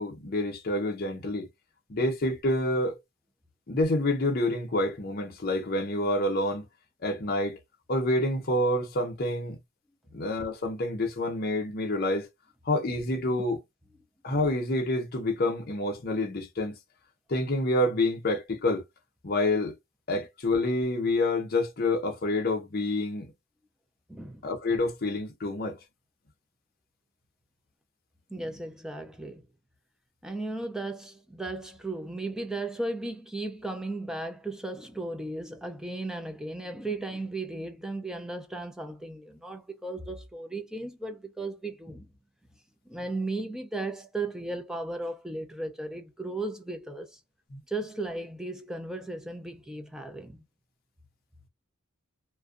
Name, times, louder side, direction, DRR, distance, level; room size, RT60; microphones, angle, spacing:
voice 1, 0.0-1.5 1.9-3.0 3.7-6.7 7.0-7.6 7.9-9.6 10.1-12.3 12.7-13.6 14.2-16.8 17.3-18.8 19.2-19.7 20.1-23.3 24.4-25.8 47.5-47.6, left 1 dB, 45° left, 0.7 m, -28 dB
voice 2, 24.1-24.5 28.3-29.5 30.2-42.1 42.9-47.2 47.7-50.4, right 2 dB, 5° right, 0.3 m, -36 dB
2.5 x 2.2 x 2.3 m
head